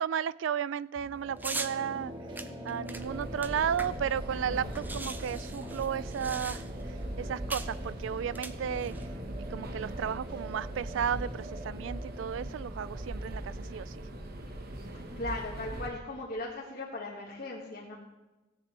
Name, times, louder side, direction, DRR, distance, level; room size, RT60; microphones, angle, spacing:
voice 1, 0.0-2.1 2.6-6.6 7.2-8.9 9.5-14.0, right 8 dB, 75° right, 19 dB, 0.3 m, -33 dB
sound 1, 1.0-14.6, equal, 25° right, 1.8 m, -44 dB
sound 2, 1.4-1.8 2.4-4.2 4.4-4.5 4.7-6.9 7.5-7.8 8.3-9.1, right 3 dB, 10° right, 0.5 m, -40 dB
sound 3, 2.9-15.9, right 1 dB, 55° right, 1.2 m, -40 dB
voice 2, 14.9-18.0, left 2 dB, 50° left, -3 dB, 1.8 m, -39 dB
17.0 x 9.7 x 3.3 m, 1.1 s
head